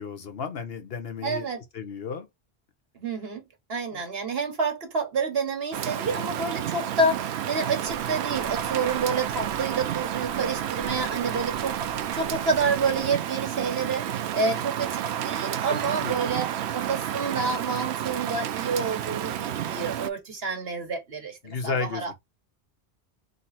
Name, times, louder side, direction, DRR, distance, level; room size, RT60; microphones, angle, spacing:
voice 1, 0.0-1.5 1.7-2.3 3.9-4.0 15.7-16.1 21.4-22.2, left 5 dB, 65° left, 1.2 m, -33 dB
voice 2, 1.2-1.6 2.9-3.4 3.7-22.2, right 4 dB, 70° right, 1.6 m, -29 dB
Rain, 5.7-20.1, right 10 dB, 85° right, 0.8 m, -30 dB
sound 1, 7.8-13.0, equal, 45° right, 1.7 m, -46 dB
3.9 x 3.0 x 4.2 m
omnidirectional pair, 1.1 m